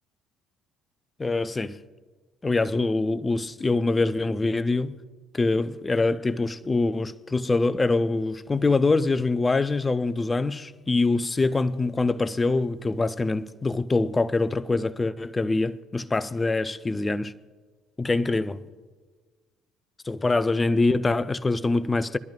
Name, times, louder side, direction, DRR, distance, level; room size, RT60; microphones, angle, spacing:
voice 1, 1.2-1.8 2.4-5.0 5.3-17.3 18.0-18.6 20.1-22.2, left 3 dB, 20° left, 0.5 m, -24 dB
26.5 x 11.5 x 2.4 m
figure-of-eight pair, 50°, 0 cm